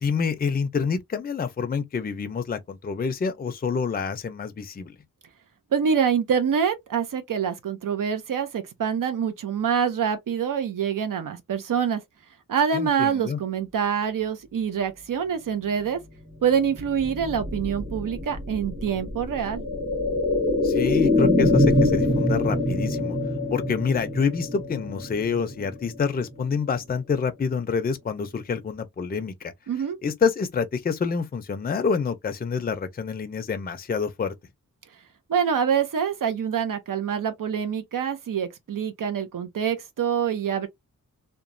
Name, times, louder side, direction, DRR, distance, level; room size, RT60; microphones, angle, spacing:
voice 1, 0.0-4.9 12.7-13.4 20.6-23.2 23.5-29.5 30.0-34.3, left 5 dB, 30° left, 0.4 m, -27 dB
voice 2, 5.7-12.0 12.5-16.0 16.4-19.6 29.7-30.0 35.3-40.7, right 7 dB, 75° right, 0.6 m, -25 dB
sound 1, 16.7-26.5 26.8-26.9, left 2 dB, 35° right, 1.4 m, -25 dB
2.9 x 2.2 x 2.5 m
wide cardioid pair, 100°, 33 cm